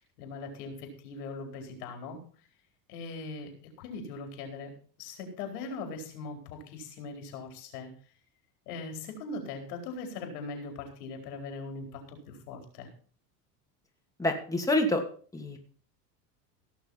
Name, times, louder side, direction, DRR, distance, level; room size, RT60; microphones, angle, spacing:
voice 1, 0.2-2.2 2.9-3.5 3.8-4.7 5.0-7.9 8.7-12.9, left 3 dB, 80° left, 3 dB, 4.5 m, -40 dB
voice 2, 14.2-15.0 15.3-15.6, left 1 dB, 5° left, 1 dB, 2.7 m, -27 dB
17.0 x 6.6 x 5.6 m, 0.43 s
hypercardioid pair, 90°, 46 cm